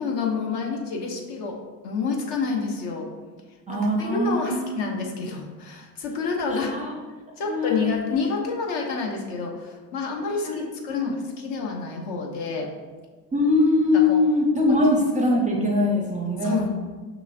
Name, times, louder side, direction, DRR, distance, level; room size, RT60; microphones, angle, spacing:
voice 1, 0.0-1.6 1.8-3.1 3.7-6.7 7.4-12.7 13.9-14.2 16.4-16.7, left 4 dB, 55° left, 0 dB, 0.9 m, -28 dB
voice 2, 3.7-4.8 6.5-6.9 7.4-7.9 10.4-11.1 13.3-16.6, left 2 dB, 15° right, 0 dB, 0.5 m, -22 dB
5.7 x 2.9 x 2.5 m, 1.4 s
hypercardioid pair, 70°, 46 cm